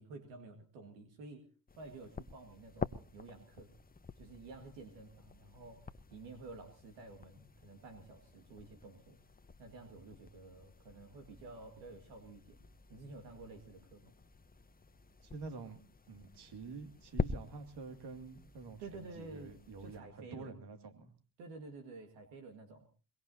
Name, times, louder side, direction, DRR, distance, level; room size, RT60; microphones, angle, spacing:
voice 1, 0.0-1.5 1.8-3.7 4.2-5.8 6.1-9.2 9.6-12.6 12.9-14.2 18.8-20.6 21.4-22.9, right 3 dB, 85° right, 5 dB, 2.0 m, -51 dB
sound 1, 1.7-20.0, left 4 dB, 20° left, 0.9 m, -47 dB
voice 2, 15.2-15.8 16.1-21.1, right 4 dB, 65° right, 7 dB, 2.4 m, -48 dB
23.0 x 21.5 x 2.8 m, 0.35 s
hypercardioid pair, 55°, 44 cm